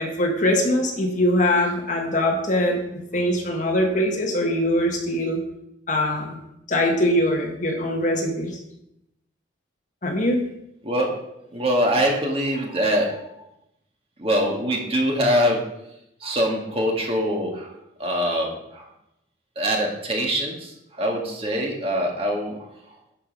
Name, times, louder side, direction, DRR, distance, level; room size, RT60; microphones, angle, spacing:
voice 1, 0.0-2.8 3.1-5.4 5.9-6.3 6.7-8.5 10.0-10.4, left 1 dB, 40° left, 2 dB, 1.6 m, -22 dB
voice 2, 10.8-11.1 11.5-13.2 14.2-15.6 16.2-17.7 18.0-18.9 19.6-22.6, equal, 30° right, 0 dB, 1.8 m, -23 dB
11.0 x 5.6 x 5.4 m, 0.82 s
head